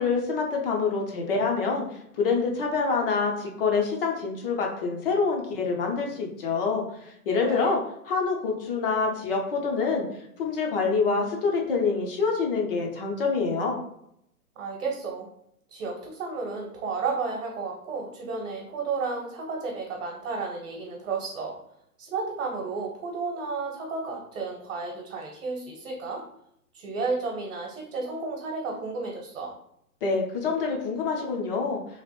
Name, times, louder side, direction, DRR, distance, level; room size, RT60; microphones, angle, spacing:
voice 1, 0.0-1.8 2.2-7.8 8.1-10.0 10.4-13.8 30.0-31.8, left 4 dB, 35° left, 1 dB, 0.7 m, -26 dB
voice 2, 7.4-7.8 14.5-15.3 15.7-21.6 22.0-26.2 26.7-29.5, right 4 dB, 55° right, 0 dB, 1.0 m, -32 dB
3.1 x 2.4 x 3.0 m, 0.74 s
hypercardioid pair, 135°, 46 cm